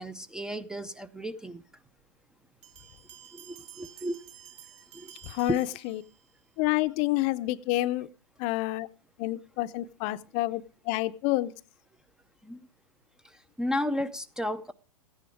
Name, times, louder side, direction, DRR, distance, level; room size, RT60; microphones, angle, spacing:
voice 1, 0.0-1.6 3.3-4.2 4.9-5.1 5.5-5.6 12.4-12.6 13.2-14.7, equal, 5° right, 0.5 m, -33 dB
Bell, 2.6-6.4, right 10 dB, 30° right, 1.7 m, -51 dB
voice 2, 5.2-6.0 6.6-8.1 8.4-8.9 9.2-11.5, left 17 dB, 35° left, 0.7 m, -28 dB
14.5 x 10.0 x 5.0 m
hypercardioid pair, 115°, 19 cm